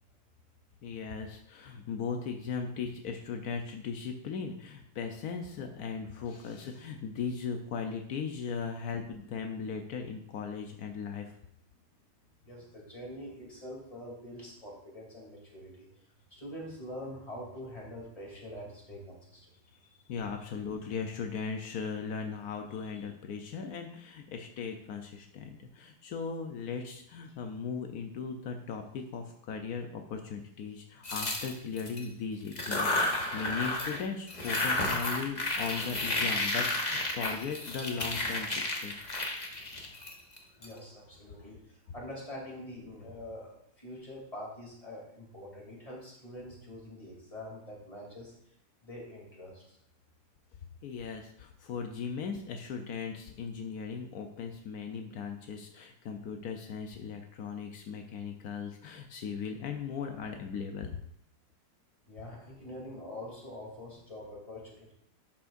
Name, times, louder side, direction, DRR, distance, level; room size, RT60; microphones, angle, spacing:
voice 1, 0.8-11.3 19.8-39.0 50.8-61.0, left 5 dB, 80° left, 4 dB, 0.8 m, -38 dB
voice 2, 12.4-15.9 16.3-19.4 40.6-48.3 48.8-49.8 62.1-64.9, left 1 dB, 15° left, -3 dB, 2.9 m, -45 dB
sound 1, 31.0-32.0 32.5-34.0 34.3-40.7, left 2 dB, 35° left, 0.7 m, -32 dB
11.5 x 7.3 x 2.6 m, 0.73 s
omnidirectional pair, 2.4 m